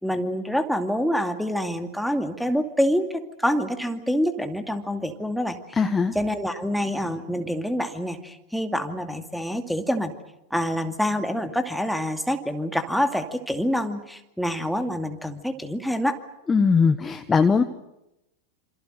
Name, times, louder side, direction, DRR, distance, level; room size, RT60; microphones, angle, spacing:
voice 1, 0.0-5.6 6.1-10.1 10.5-16.1, equal, ahead, 6 dB, 2.4 m, -26 dB
voice 2, 5.7-6.1 16.5-17.6, left 5 dB, 15° left, 9 dB, 1.2 m, -20 dB
27.5 x 27.0 x 6.6 m, 0.89 s
figure-of-eight pair, 90°, 0 cm